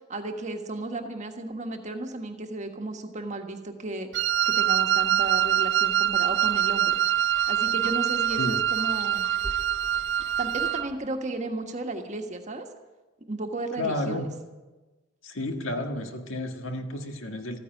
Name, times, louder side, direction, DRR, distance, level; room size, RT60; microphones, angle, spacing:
voice 1, 0.1-7.0 7.5-9.3 10.4-12.7 13.3-14.3, right 2 dB, 35° right, 4 dB, 1.5 m, -34 dB
Wind instrument woodwind instrument, 4.1-10.9, right 11 dB, 60° right, 0.4 m, -24 dB
sound 1, 6.4-11.2, right 1 dB, 10° right, 0.8 m, -46 dB
voice 2, 13.8-14.3 15.2-17.6, left 1 dB, 75° left, 5 dB, 1.7 m, -31 dB
14.5 x 9.8 x 9.1 m, 1.2 s
head